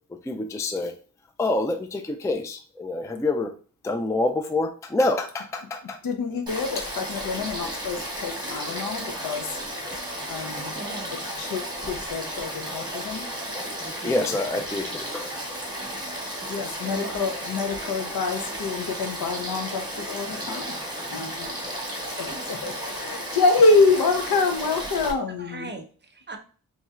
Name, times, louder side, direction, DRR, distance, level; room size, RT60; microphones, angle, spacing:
voice 1, 0.2-0.9 1.4-3.5 3.8-6.0 14.0-15.2, left 2 dB, 10° left, 6 dB, 0.3 m, -26 dB
voice 2, 6.0-9.6 10.3-10.7 11.4-13.3 15.1-15.3 16.5-20.8 21.1-21.5 22.2-25.7, left 3 dB, 80° left, 5 dB, 0.8 m, -26 dB
Frog / Stream, 6.5-25.1, equal, 10° right, 1.4 m, -34 dB
voice 3, 10.7-11.1 13.8-14.6 16.8-17.3 21.4-21.5 25.0-25.1 25.4-26.4, right 2 dB, 30° right, 5 dB, 0.7 m, -39 dB
4.1 x 3.1 x 2.4 m, 0.41 s
cardioid pair, 75°, 35 cm